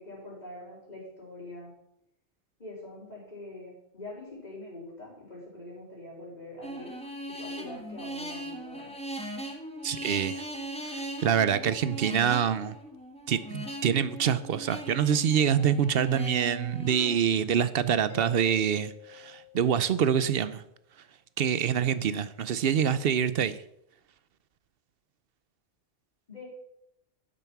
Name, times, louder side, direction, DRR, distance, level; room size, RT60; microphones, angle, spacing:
voice 1, 0.0-1.7 2.6-6.9 7.3-8.9 26.3-26.4, left 2 dB, 40° left, 4.3 m, -44 dB
sound 1, 6.6-17.2, right 1 dB, 5° left, 1.4 m, -39 dB
voice 2, 9.8-10.5 10.8-12.8 13.3-20.7 21.0-21.1 21.4-23.6, right 8 dB, 60° right, 0.8 m, -26 dB
Mallet percussion, 18.1-20.6, left 17 dB, 90° left, 1.2 m, -50 dB
12.0 x 7.1 x 5.9 m
omnidirectional pair, 1.2 m